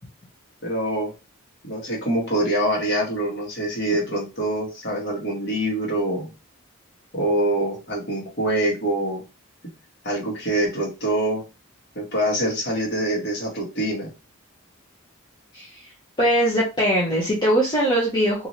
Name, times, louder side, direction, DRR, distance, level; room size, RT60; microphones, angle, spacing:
voice 1, 0.6-1.1 1.6-6.3 7.1-9.2 10.0-11.4 11.9-14.1, right 1 dB, 50° left, -2 dB, 1.3 m, -25 dB
voice 2, 15.5-15.9 16.2-18.5, equal, 20° left, -5 dB, 0.7 m, -21 dB
3.1 x 2.6 x 2.7 m, 0.27 s
head